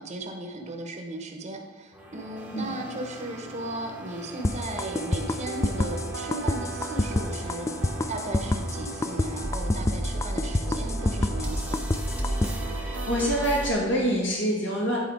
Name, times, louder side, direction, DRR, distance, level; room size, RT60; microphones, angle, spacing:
voice 1, 0.0-7.7 8.1-11.8, right 2 dB, 40° right, 4 dB, 1.0 m, -36 dB
sound 1, 1.9-13.7, right 1 dB, 5° right, 0.9 m, -35 dB
sound 2, 4.4-12.5, left 2 dB, 15° left, 0.4 m, -27 dB
sound 3, 4.8-13.5, right 6 dB, 85° right, 0.4 m, -40 dB
voice 2, 12.7-15.0, equal, 80° left, -4 dB, 1.9 m, -26 dB
10.5 x 4.4 x 4.8 m, 1.3 s
head